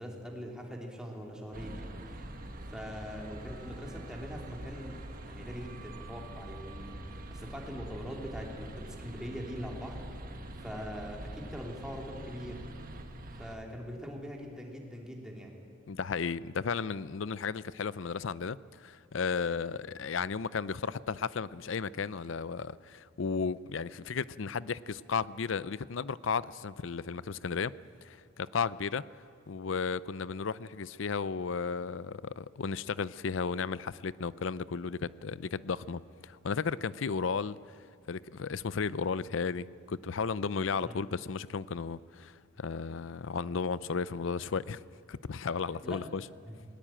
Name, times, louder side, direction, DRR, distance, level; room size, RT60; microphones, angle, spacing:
voice 1, 0.0-2.3 2.7-10.0 10.6-12.6 13.4-15.5 40.8-41.0 45.7-46.1 46.4-46.6, equal, 5° right, -1 dB, 3.0 m, -42 dB
sound 1, 1.5-13.5, right 1 dB, 40° right, 1.5 m, -44 dB
voice 2, 15.9-29.1 29.5-37.6 38.1-44.8 45.1-46.2, left 5 dB, 65° left, 18 dB, 0.5 m, -34 dB
20.0 x 19.0 x 8.9 m, 2.3 s
head